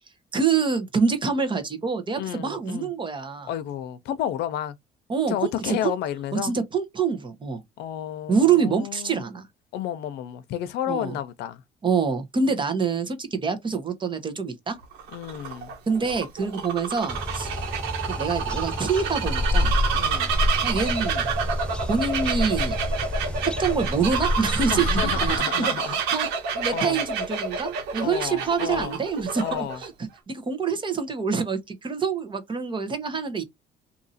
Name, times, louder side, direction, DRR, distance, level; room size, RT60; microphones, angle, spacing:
voice 1, 0.3-3.5 5.1-5.9 6.3-7.6 8.3-9.5 10.9-11.2 11.8-14.8 15.9-17.5 18.1-19.7 20.6-21.3 21.9-22.8 23.4-26.3 26.5-29.9 30.3-33.4, right 5 dB, 30° right, 1.1 m, -26 dB
voice 2, 2.2-2.9 3.5-4.8 5.3-6.6 7.8-9.2 9.7-11.6 15.1-15.7 19.9-20.3 24.7-26.3 26.7-27.0 28.0-29.0 29.4-29.8, left 10 dB, 80° left, 0.6 m, -31 dB
Bird vocalization bird call bird song, 14.8-29.9, right 6 dB, 90° right, 1.1 m, -29 dB
backyard birds, 17.1-25.4, left 1 dB, 5° left, 0.4 m, -28 dB
2.8 x 2.7 x 4.0 m
cardioid pair, 110°, 17 cm